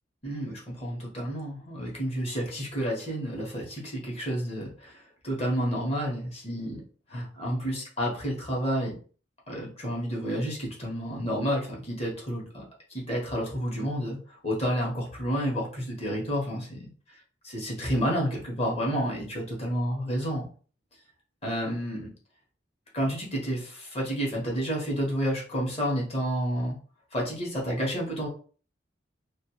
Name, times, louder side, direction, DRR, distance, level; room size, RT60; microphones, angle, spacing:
voice 1, 0.2-4.9 5.2-6.8 7.1-9.0 9.5-12.6 12.9-14.2 14.4-16.8 17.5-20.5 21.4-22.1 22.9-26.7 27.1-28.3, equal, 35° left, -2 dB, 1.0 m, -30 dB
2.4 x 2.3 x 2.9 m, 0.40 s
head